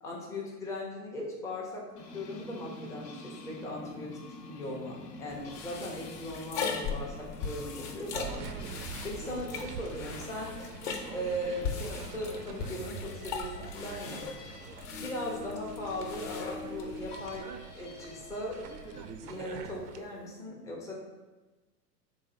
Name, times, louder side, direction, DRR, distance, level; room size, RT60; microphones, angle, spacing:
voice 1, 0.0-4.1 4.5-8.3 9.0-10.5 11.1-14.2 14.9-18.6 19.2-20.9, left 1 dB, 10° left, -3 dB, 0.3 m, -38 dB
sound 1, 2.0-19.1, left 3 dB, 75° left, 0.8 m, -47 dB
sound 2, 5.3-17.4, left 5 dB, 45° left, 0.7 m, -40 dB
sound 3, 8.1-20.0, right 6 dB, 75° right, 0.5 m, -45 dB
3.5 x 2.7 x 4.1 m, 1.2 s
hypercardioid pair, 100°, 48 cm